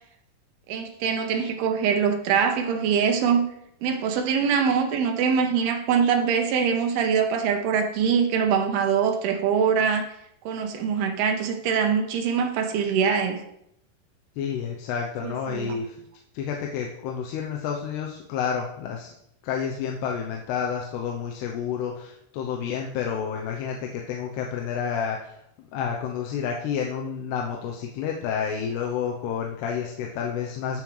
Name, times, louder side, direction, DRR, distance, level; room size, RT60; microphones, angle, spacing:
voice 1, 0.7-3.4 3.8-10.1 10.5-13.4 15.2-15.7, right 6 dB, 75° right, 4 dB, 2.8 m, -23 dB
voice 2, 14.4-16.0 16.3-19.1 19.4-30.8, left 7 dB, 90° left, 1 dB, 2.9 m, -30 dB
14.5 x 7.2 x 3.3 m, 0.76 s
omnidirectional pair, 4.6 m